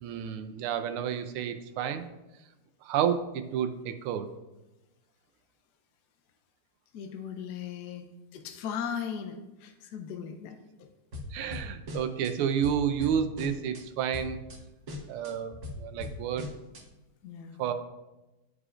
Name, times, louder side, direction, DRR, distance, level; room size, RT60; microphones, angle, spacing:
voice 1, 0.0-2.0 2.8-4.3 11.3-14.4 15.1-16.5 17.6-17.7, right 8 dB, 85° right, 9 dB, 1.5 m, -30 dB
voice 2, 6.9-10.9 17.2-17.6, left 7 dB, 75° left, 5 dB, 0.9 m, -38 dB
sound 1, 11.1-12.3 12.6-13.8 14.1-14.6 14.9-16.8, left 2 dB, 45° right, 1.2 m, -40 dB
11.0 x 4.9 x 2.5 m, 1.0 s
omnidirectional pair, 2.3 m